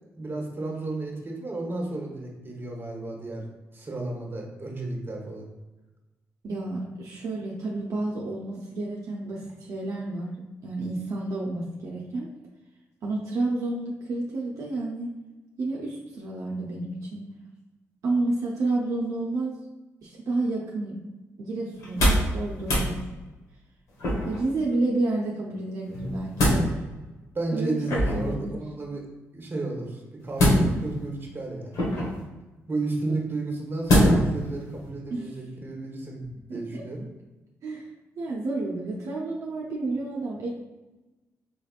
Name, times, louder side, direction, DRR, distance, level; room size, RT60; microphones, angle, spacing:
voice 1, 0.1-3.4 3.7-5.5 27.3-29.0 29.3-31.8 32.7-37.0, right 2 dB, 35° right, 0 dB, 1.1 m, -33 dB
voice 2, 6.4-10.4 10.6-12.3 13.0-15.1 15.6-17.2 18.0-19.6 20.0-21.0 21.4-23.0 24.2-26.8 27.5-28.6 35.1-35.4 36.5-36.8 37.6-37.9 38.2-40.5, right 2 dB, 65° right, -3 dB, 0.6 m, -30 dB
sound 1, 21.8-22.3 22.6-22.9 24.0-24.5 25.9-26.6 27.9-28.3 30.3-31.0 31.7-32.2 33.9-34.4 34.8-34.9, equal, 75° left, 1.3 m, -22 dB
3.6 x 3.3 x 2.4 m, 1.1 s
supercardioid pair, 60°, 6 cm